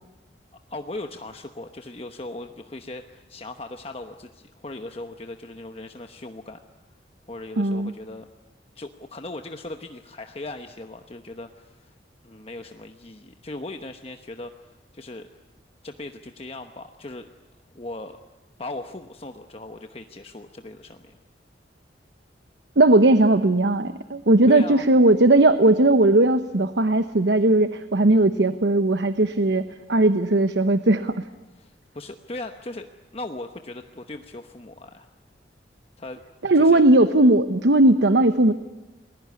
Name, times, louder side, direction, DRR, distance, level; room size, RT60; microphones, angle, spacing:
voice 1, 0.7-6.6 7.3-8.3 8.7-12.0 12.2-15.3 15.8-17.3 17.7-18.2 18.6-21.2 24.5-24.9 31.6-35.1 36.0-36.2 36.5-36.8, left 2 dB, 35° left, 6 dB, 1.0 m, -38 dB
voice 2, 7.6-7.9 22.8-31.2 36.4-38.5, right 2 dB, 75° right, 10 dB, 1.0 m, -18 dB
29.0 x 21.0 x 9.6 m, 1.1 s
head